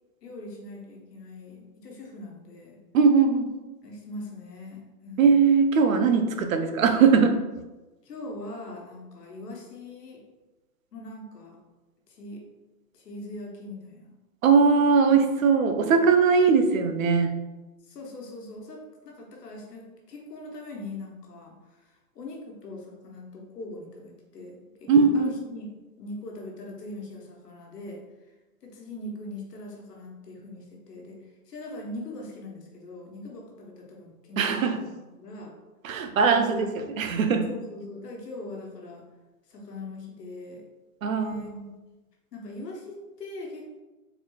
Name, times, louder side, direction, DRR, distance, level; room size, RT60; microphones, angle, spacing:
voice 1, 0.2-2.8 3.8-5.4 8.0-10.2 10.9-11.6 12.1-12.4 12.9-14.1 15.1-15.2 17.8-25.7 26.0-28.3 28.6-35.6 36.3-36.7 37.5-39.1 39.5-40.6 41.2-41.5 42.3-43.8, left 2 dB, 90° left, -1 dB, 1.1 m, -41 dB
voice 2, 2.9-3.5 5.2-7.3 14.4-17.3 24.9-25.3 34.4-34.8 35.8-36.7 37.0-37.5 41.0-41.7, right 5 dB, 60° right, 6 dB, 0.6 m, -20 dB
4.0 x 3.0 x 2.3 m, 1.1 s
hypercardioid pair, 165°, 46 cm